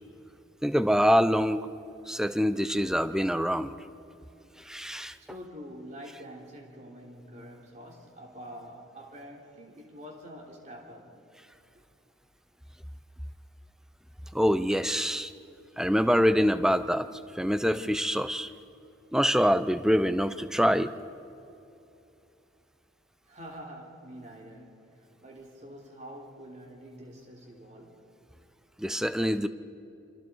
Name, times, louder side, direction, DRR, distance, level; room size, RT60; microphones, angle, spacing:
voice 1, 0.6-1.7 2.1-3.8 4.6-5.2 14.3-15.3 15.8-17.1 17.3-18.5 19.1-20.9 28.8-29.5, equal, 5° right, 12 dB, 0.5 m, -25 dB
voice 2, 5.3-11.2 23.3-28.0, equal, 40° right, 0 dB, 3.5 m, -46 dB
27.5 x 26.0 x 4.6 m, 2.8 s
head